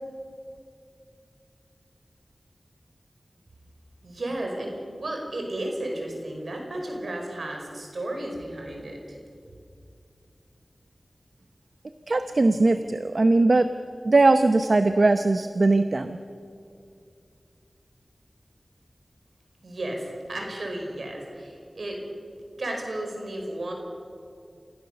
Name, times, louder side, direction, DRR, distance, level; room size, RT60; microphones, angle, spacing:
voice 1, 4.0-9.2 19.6-22.0 22.6-23.7, right 1 dB, 80° right, 1 dB, 5.1 m, -33 dB
voice 2, 12.1-13.7 14.0-16.2, right 2 dB, 65° right, 9 dB, 0.8 m, -20 dB
28.0 x 16.0 x 6.9 m, 2.4 s
wide cardioid pair, 50°, 0 cm